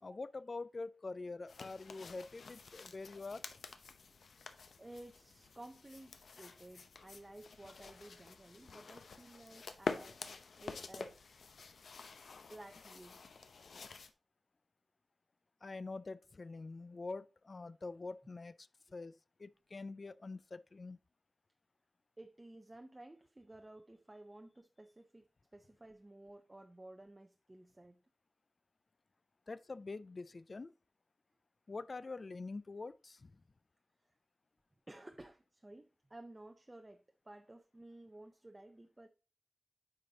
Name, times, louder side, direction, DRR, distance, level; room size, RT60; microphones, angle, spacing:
voice 1, 0.0-3.4 15.6-21.0 29.5-30.7 31.7-33.4, left 3 dB, 40° left, 0.3 m, -45 dB
sound 1, 1.5-14.1, left 4 dB, 80° left, 0.7 m, -48 dB
voice 2, 4.8-10.2 10.6-11.2 12.5-13.2 22.2-28.0 34.0-34.2 34.9-39.1, right 1 dB, 20° right, 0.5 m, -55 dB
9.1 x 5.1 x 2.8 m
wide cardioid pair, 120°, 0 cm